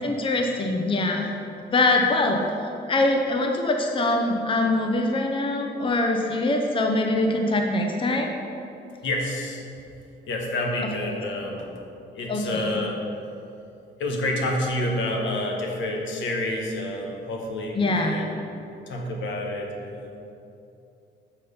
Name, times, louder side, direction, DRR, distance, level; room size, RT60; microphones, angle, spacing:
voice 1, 0.0-1.3 1.7-2.4 2.9-8.3 12.3-12.8 17.8-18.2, left 2 dB, 25° left, 2 dB, 0.7 m, -23 dB
voice 2, 9.0-9.6 10.3-11.6 12.1-13.0 14.0-18.3 18.9-20.1, left 1 dB, 75° left, 1 dB, 1.2 m, -28 dB
7.2 x 4.4 x 5.1 m, 2.7 s
cardioid pair, 90°, 20 cm